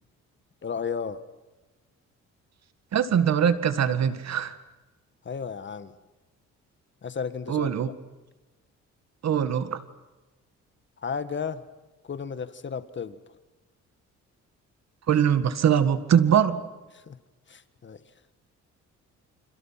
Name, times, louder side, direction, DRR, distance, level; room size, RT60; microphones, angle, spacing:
voice 1, 0.6-1.2 5.2-5.9 7.0-7.7 11.0-11.6 12.0-13.2 16.9-17.2 17.5-18.0, left 6 dB, 40° left, 12 dB, 1.6 m, -33 dB
voice 2, 2.9-4.6 7.5-7.9 9.2-9.8 15.1-16.6, right 8 dB, 60° right, 11 dB, 1.9 m, -22 dB
29.5 x 27.5 x 5.9 m, 1.1 s
cardioid pair, 90°, 30 cm